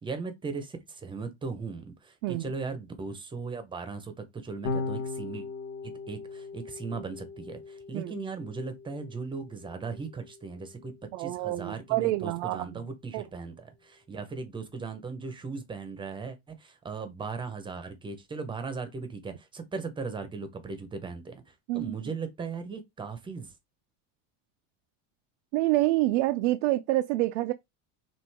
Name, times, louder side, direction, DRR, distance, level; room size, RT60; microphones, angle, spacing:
voice 1, 0.0-5.5 5.8-23.5, right 4 dB, 15° right, 0.8 m, -38 dB
Electric guitar / Bass guitar, 4.6-11.0, left 3 dB, 80° left, 1.7 m, -39 dB
voice 2, 11.1-12.7 13.1-13.2 21.7-21.9 25.5-27.5, right 17 dB, 70° right, 0.5 m, -27 dB
6.0 x 2.5 x 3.5 m
cardioid pair, 155°, 38 cm